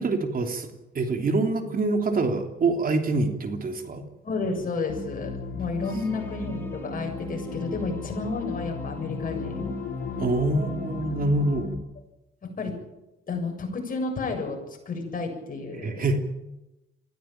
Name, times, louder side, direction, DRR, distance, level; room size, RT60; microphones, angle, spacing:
voice 1, 0.0-4.0 10.2-11.7 15.8-16.2, right 2 dB, 45° right, 4 dB, 3.2 m, -25 dB
voice 2, 4.2-9.7 12.4-12.7 13.3-16.1, left 3 dB, 45° left, 3 dB, 7.3 m, -31 dB
sound 1, 4.9-11.7, left 4 dB, 85° left, 3.8 m, -35 dB
sound 2, 5.8-11.0, right 2 dB, 10° left, 5.2 m, -44 dB
22.0 x 15.5 x 9.0 m, 0.98 s
cardioid pair, 90°, 20 cm